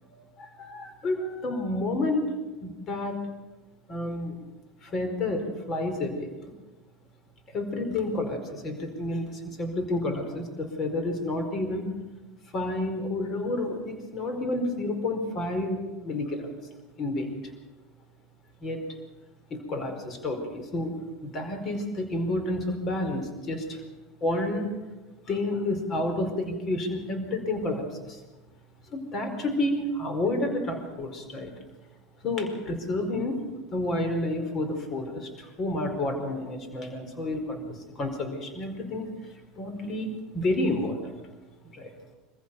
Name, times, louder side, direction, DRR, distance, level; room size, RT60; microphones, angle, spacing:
voice 1, 0.1-2.3 2.6-3.2 3.9-4.4 4.8-6.5 7.5-11.9 12.5-16.5 17.0-17.3 18.6-18.8 19.5-23.8 24.2-24.7 25.3-28.2 28.9-31.5 32.2-33.4 33.7-41.1 41.7-41.9, left 2 dB, 40° left, 6 dB, 4.8 m, -30 dB
25.5 x 15.0 x 7.1 m, 1.2 s
supercardioid pair, 100°, 0 cm